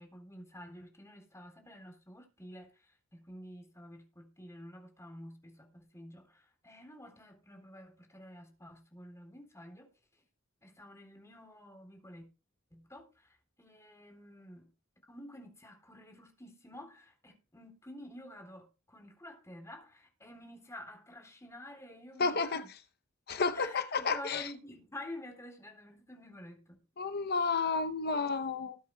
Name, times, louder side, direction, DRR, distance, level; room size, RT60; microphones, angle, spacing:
voice 1, 0.0-9.9 10.6-12.3 12.7-14.7 15.1-22.7 23.4-26.8, left 1 dB, 15° left, 3.7 m, -50 dB
voice 2, 22.2-22.6 23.3-24.5 27.0-28.8, left 4 dB, 50° left, 0.8 m, -31 dB
20.0 x 8.4 x 2.3 m
head